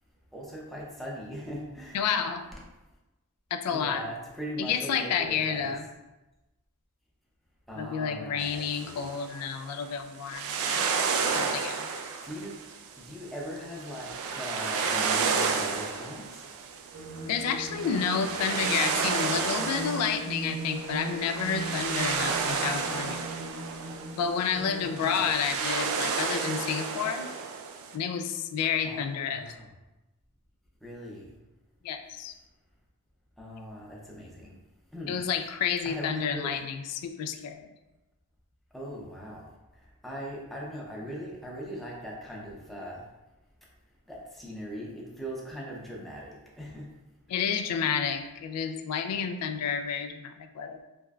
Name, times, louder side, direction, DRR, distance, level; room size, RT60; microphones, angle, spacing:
voice 1, 0.3-2.0 3.7-5.8 7.7-9.1 12.2-12.6 13.0-16.4 24.5-25.3 28.8-29.7 30.8-31.3 33.4-34.6 34.9-35.2 35.8-36.6 38.7-39.4 40.0-43.0 44.1-46.9, equal, ahead, -4 dB, 0.6 m, -40 dB
voice 2, 1.9-2.5 3.5-4.0 4.6-5.8 7.8-10.8 11.3-11.9 17.3-23.3 24.1-27.3 27.9-29.4 31.8-32.3 35.1-37.7 47.3-50.8, left 7 dB, 85° left, 12 dB, 0.3 m, -30 dB
sound 1, 8.5-28.0, right 5 dB, 65° right, 0.3 m, -32 dB
sound 2, 16.9-26.8, right 2 dB, 40° right, 0.7 m, -40 dB
3.4 x 3.0 x 2.3 m, 1.0 s
head